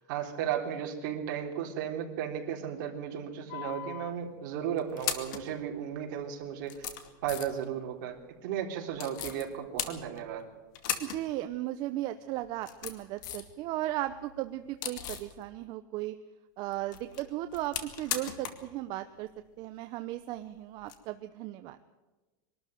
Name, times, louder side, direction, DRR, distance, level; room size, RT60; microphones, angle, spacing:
voice 1, 0.1-6.7 7.2-8.2 8.4-10.5, right 9 dB, 60° right, 2 dB, 3.7 m, -35 dB
sound 1, 3.5-4.1 4.8-5.5 6.2-6.3 6.6-7.7 9.0-9.4 9.8-10.4 10.7-11.2 11.5-11.6 12.4-13.5 13.9-15.3 16.7-18.7 18.9-19.0 20.8-20.9, left 10 dB, 65° left, 2.4 m, -37 dB
voice 2, 11.0-16.1 16.6-19.3 19.6-21.8, right 15 dB, 40° right, 9 dB, 0.8 m, -36 dB
23.0 x 13.0 x 9.2 m, 1.2 s
supercardioid pair, 155°, 11 cm